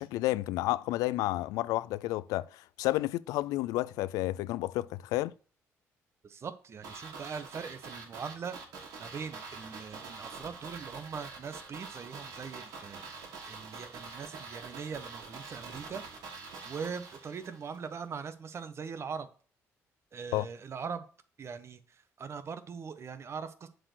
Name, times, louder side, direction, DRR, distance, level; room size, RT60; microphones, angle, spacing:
voice 1, 0.0-5.3 20.3-20.5, left 17 dB, 90° left, 0.3 m, -31 dB
voice 2, 6.2-8.6 9.0-16.0 16.6-19.3 20.1-21.1 21.4-23.7, right 6 dB, 50° right, 1.2 m, -41 dB
sound 1, 6.8-17.8 18.0-18.1, right 4 dB, 80° right, 3.0 m, -45 dB
7.5 x 4.6 x 6.2 m
cardioid pair, 75°, 6 cm